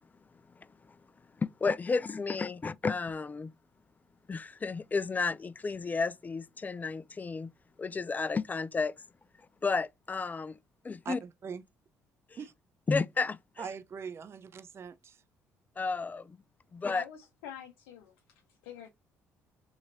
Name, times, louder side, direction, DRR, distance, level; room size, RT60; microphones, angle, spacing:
voice 1, 1.4-3.5 4.3-7.5 7.8-8.9 9.6-10.6 10.8-11.2 12.9-13.6 15.8-16.4 16.7-17.0, left 4 dB, 25° left, 0.3 m, -32 dB
voice 2, 11.0-11.6 12.4-12.5 13.6-15.2, right 6 dB, 40° right, 0.4 m, -42 dB
voice 3, 16.9-18.1 18.6-18.9, left 9 dB, 90° left, 0.4 m, -46 dB
2.9 x 2.8 x 2.6 m
supercardioid pair, 60°, 6 cm